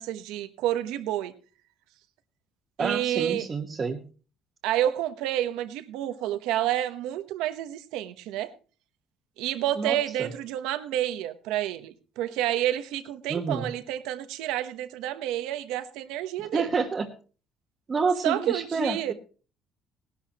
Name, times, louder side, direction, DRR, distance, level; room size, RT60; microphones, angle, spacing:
voice 1, 0.0-1.3 2.8-3.5 4.6-8.5 9.4-16.7 18.2-19.1, right 12 dB, 85° right, 11 dB, 1.0 m, -29 dB
voice 2, 2.8-4.0 9.8-10.3 13.3-13.7 16.5-17.1 17.9-19.1, right 4 dB, 30° right, 0 dB, 1.3 m, -28 dB
18.0 x 12.0 x 3.0 m, 0.37 s
cardioid pair, 115°, 0 cm